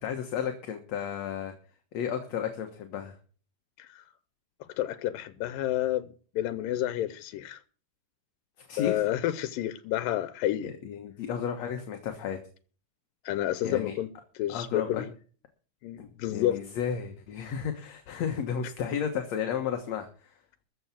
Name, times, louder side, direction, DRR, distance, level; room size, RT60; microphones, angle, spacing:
voice 1, 0.0-1.5 1.9-3.2 8.6-9.0 10.6-12.4 13.6-14.0 14.5-15.0 16.0-20.4, left 8 dB, 60° left, 2.3 m, -33 dB
voice 2, 4.8-6.1 6.4-7.6 8.8-10.7 13.3-14.1 14.4-15.1 15.8-16.6, left 13 dB, 90° left, 2.5 m, -29 dB
14.0 x 7.0 x 7.5 m
omnidirectional pair, 3.8 m